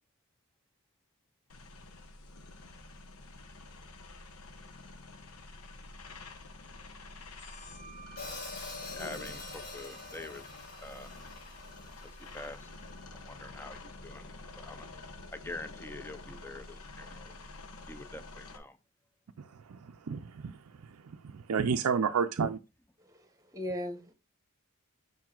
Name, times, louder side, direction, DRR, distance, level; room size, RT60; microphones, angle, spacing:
sound 1, 1.5-18.6, left 2 dB, 80° left, 1.0 m, -48 dB
sound 2, 7.2-14.5, right 4 dB, 35° left, 1.3 m, -56 dB
Hi-hat, 8.2-12.3, left 3 dB, 55° left, 3.4 m, -45 dB
voice 1, 8.9-10.4 10.8-11.1 12.3-12.7 13.1-14.9 15.3-17.3 17.9-18.8, left 2 dB, 10° left, 0.5 m, -45 dB
voice 2, 19.4-20.5 21.1-22.6, right 6 dB, 70° right, 0.5 m, -31 dB
voice 3, 23.0-24.1, left 1 dB, 15° right, 1.1 m, -38 dB
7.4 x 5.7 x 2.4 m
head